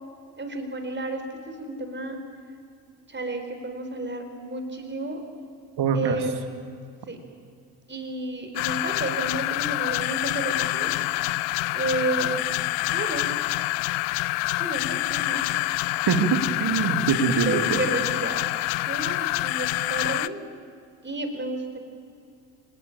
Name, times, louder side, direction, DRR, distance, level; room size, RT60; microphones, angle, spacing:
voice 1, 0.4-1.2 1.5-2.2 3.1-5.2 5.9-6.4 7.1-7.2 7.9-10.9 11.7-12.4 12.9-13.3 14.6-15.8 17.5-18.5 18.9-20.4 21.0-21.8, right 2 dB, 20° right, 5 dB, 4.7 m, -31 dB
voice 2, 5.8-6.2 16.1-17.8, right 6 dB, 50° right, 7 dB, 2.6 m, -23 dB
sound 1, 8.6-20.3, left 19 dB, 60° left, 0.8 m, -27 dB
26.0 x 20.0 x 8.7 m, 2.4 s
hypercardioid pair, 55°, 49 cm